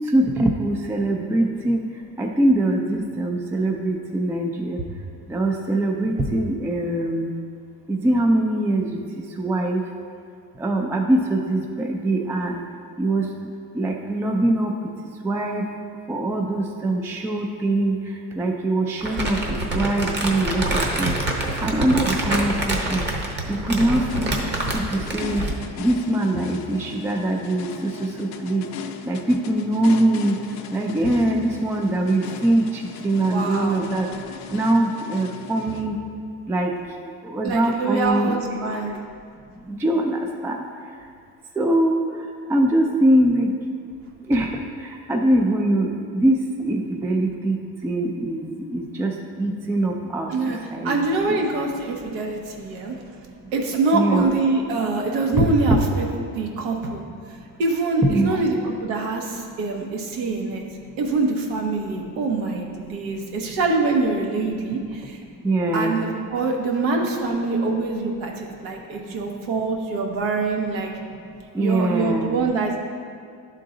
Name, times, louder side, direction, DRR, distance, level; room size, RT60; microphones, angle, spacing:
voice 1, 0.1-1.8 2.2-4.8 5.3-7.3 7.9-9.8 10.6-12.6 13.0-13.3 13.7-14.7 15.2-15.7 16.1-18.0 18.4-21.1 21.6-23.0 23.5-24.4 24.7-25.4 25.8-27.9 28.2-28.6 29.1-30.4 30.7-34.1 34.5-36.0 36.5-36.7 37.2-38.9 39.7-40.6 41.6-42.0 42.5-43.5 44.3-44.5 44.8-49.1 49.4-50.9 51.2-51.4 53.9-54.3 55.3-55.8 58.1-58.5 65.4-65.9 71.5-72.4, right 1 dB, 10° right, 1 dB, 0.3 m, -22 dB
Crumpling crinkling, 19.0-25.6, right 1 dB, 30° right, 1.0 m, -26 dB
sound 1, 23.8-36.5, left 6 dB, 50° left, 0.5 m, -38 dB
voice 2, 33.2-33.8 37.4-38.9 50.3-50.6 50.8-53.0 53.5-56.1 56.3-57.0 57.6-60.7 61.0-65.2 65.7-70.9 71.6-72.8, right 3 dB, 85° right, 1 dB, 1.1 m, -24 dB
11.5 x 3.8 x 3.7 m, 2.2 s
cardioid pair, 125°, 35 cm